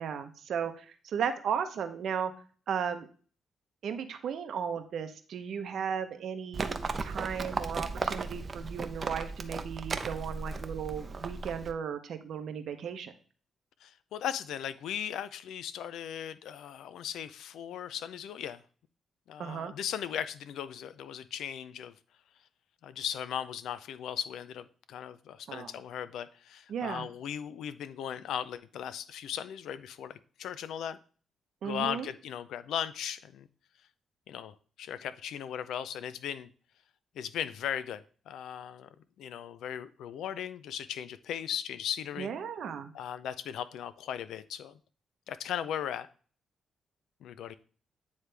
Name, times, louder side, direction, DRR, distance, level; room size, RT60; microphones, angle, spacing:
voice 1, 0.0-2.3 2.7-3.1 3.8-13.1 19.4-19.7 25.5-25.7 26.7-27.1 31.6-32.1 42.2-42.9, right 7 dB, 75° right, 8 dB, 0.8 m, -35 dB
Livestock farm animals working animals, 6.5-11.7, right 4 dB, 40° right, 0.6 m, -36 dB
voice 2, 13.8-18.6 19.3-21.9 22.8-31.0 31.6-33.5 34.3-36.5 37.2-38.9 39.2-42.3 42.9-44.8 45.3-46.1 47.2-47.6, left 9 dB, 85° left, 14 dB, 0.4 m, -37 dB
9.4 x 3.2 x 3.3 m, 0.41 s
cardioid pair, 85°, 0 cm